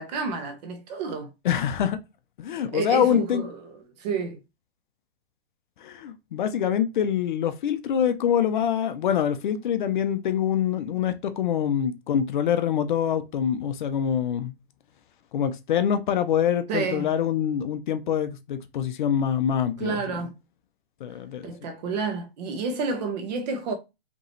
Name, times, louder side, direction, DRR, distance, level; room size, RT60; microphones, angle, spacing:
voice 1, 0.0-1.3 2.7-4.4 16.7-17.1 19.8-20.3 21.4-23.7, right 4 dB, 40° right, 1.2 m, -30 dB
voice 2, 1.4-2.0 2.4-3.4 5.8-14.5 15.3-20.2 21.0-21.5, left 9 dB, 50° left, 0.6 m, -25 dB
5.2 x 3.0 x 3.1 m
hypercardioid pair, 155°, 32 cm